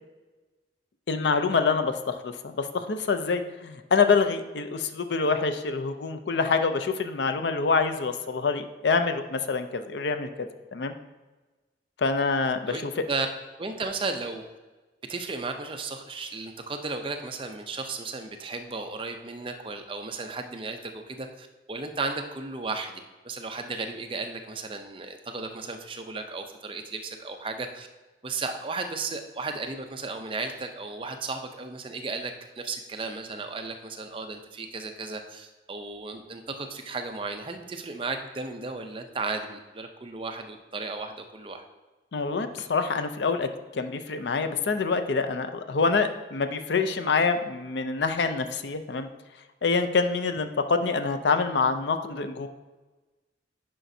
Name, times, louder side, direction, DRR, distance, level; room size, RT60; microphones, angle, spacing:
voice 1, 1.1-10.9 12.0-12.9 42.1-49.1 49.6-52.5, left 4 dB, 65° left, 9 dB, 0.5 m, -26 dB
voice 2, 13.6-14.4 15.1-22.9 23.2-27.9 28.2-41.6, right 3 dB, 30° right, 5 dB, 0.5 m, -34 dB
10.0 x 5.1 x 2.7 m, 1.2 s
head